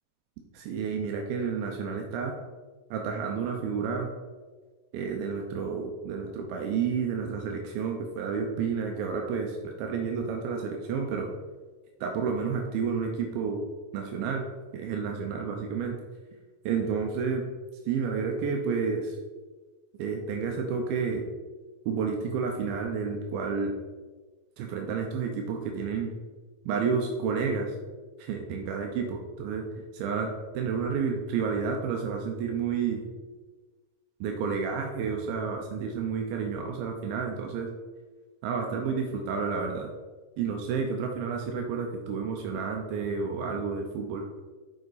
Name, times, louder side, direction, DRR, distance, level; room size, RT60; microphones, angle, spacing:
voice 1, 0.5-2.3 2.9-4.1 4.9-11.3 12.0-13.6 13.9-14.5 14.7-16.0 16.6-17.4 17.8-19.2 20.0-21.2 21.9-23.7 24.6-26.1 26.7-27.8 28.2-29.6 29.9-33.0 34.2-37.7 38.4-39.9 40.4-44.2, right 5 dB, 80° right, 2 dB, 2.5 m, -30 dB
7.7 x 4.8 x 4.0 m, 1.4 s
omnidirectional pair, 4.3 m